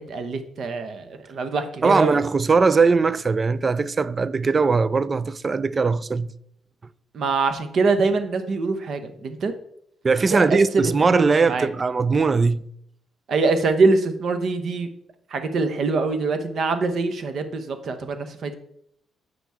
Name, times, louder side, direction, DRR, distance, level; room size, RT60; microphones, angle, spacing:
voice 1, 0.0-2.2 7.1-9.5 10.3-11.7 13.3-14.9 15.3-18.5, right 3 dB, 60° right, 1.0 m, -24 dB
voice 2, 1.8-6.3 10.0-12.7, right 4 dB, 35° right, 0.4 m, -20 dB
7.9 x 6.0 x 3.5 m
cardioid pair, 90°, 0 cm